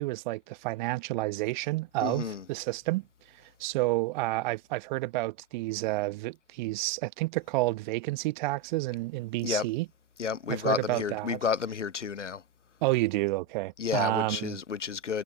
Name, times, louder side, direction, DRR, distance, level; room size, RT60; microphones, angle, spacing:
voice 1, 0.0-3.0 3.6-9.9 10.5-11.4 12.8-14.6, right 21 dB, 40° right, 1.0 m, -30 dB
voice 2, 2.0-2.4 9.4-9.7 10.2-12.4 13.8-15.2, left 6 dB, 85° left, 0.9 m, -31 dB
figure-of-eight pair, 105°, 35 cm